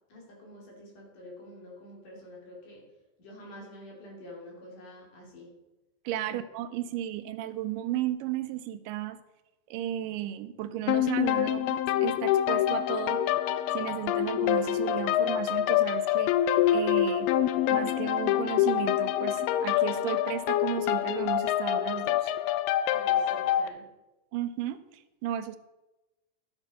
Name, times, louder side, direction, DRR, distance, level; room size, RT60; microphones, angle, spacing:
voice 1, 0.1-2.8 3.2-5.5 6.3-6.4 22.9-23.8, left 1 dB, 70° left, -2 dB, 4.4 m, -47 dB
voice 2, 6.1-9.2 9.7-13.2 13.7-16.4 16.7-17.3 17.7-22.3 24.3-25.6, right 12 dB, 85° right, 11 dB, 2.2 m, -34 dB
sound 1, 10.9-23.7, left 11 dB, 90° left, 2.3 m, -26 dB
11.5 x 7.0 x 5.5 m, 1.0 s
omnidirectional pair, 3.9 m